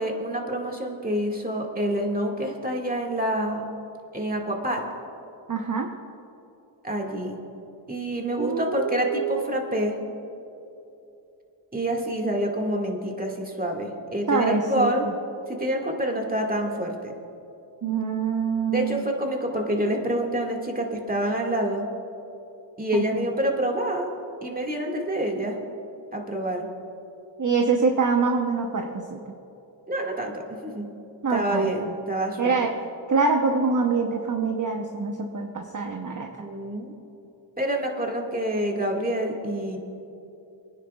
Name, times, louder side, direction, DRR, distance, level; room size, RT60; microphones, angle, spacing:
voice 1, 0.0-3.7 4.1-4.9 6.8-7.4 7.9-10.0 11.7-15.1 15.5-17.1 18.7-21.9 22.8-24.1 24.4-25.6 26.1-26.7 29.9-30.9 31.3-32.7 36.4-36.9 37.6-39.8, right 1 dB, 20° right, 0 dB, 1.9 m, -27 dB
voice 2, 5.5-5.9 8.4-9.6 14.3-14.9 17.8-19.0 22.9-23.2 27.4-29.2 31.2-31.7 32.4-32.7 33.1-36.3, right 4 dB, 40° right, 2 dB, 0.9 m, -25 dB
25.5 x 10.0 x 2.4 m, 2.9 s
cardioid pair, 50°, 48 cm